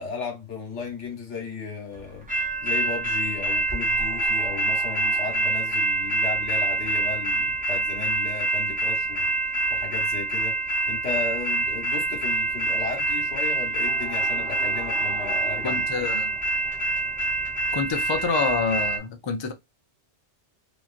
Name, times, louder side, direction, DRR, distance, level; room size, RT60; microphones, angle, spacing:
voice 1, 0.0-9.3 9.7-10.6 10.9-15.8, left 5 dB, 80° left, 1.5 m, -35 dB
sound 1, 2.3-19.0, right 2 dB, 10° right, 0.7 m, -26 dB
voice 2, 15.6-16.4 17.7-19.5, left 5 dB, 40° left, 0.4 m, -27 dB
3.0 x 2.5 x 2.4 m
omnidirectional pair, 1.2 m